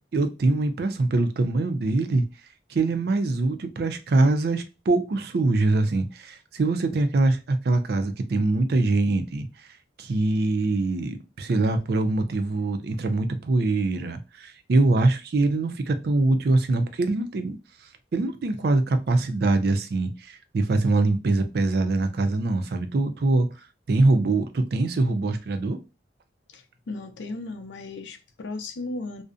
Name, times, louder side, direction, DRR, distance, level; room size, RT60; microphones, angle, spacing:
voice 1, 0.1-2.2 2.7-9.5 10.0-17.6 18.1-23.5 23.9-25.8, right 2 dB, 60° right, 0.4 m, -23 dB
voice 2, 26.5-29.2, left 2 dB, 80° left, 0.4 m, -36 dB
2.6 x 2.1 x 2.4 m
head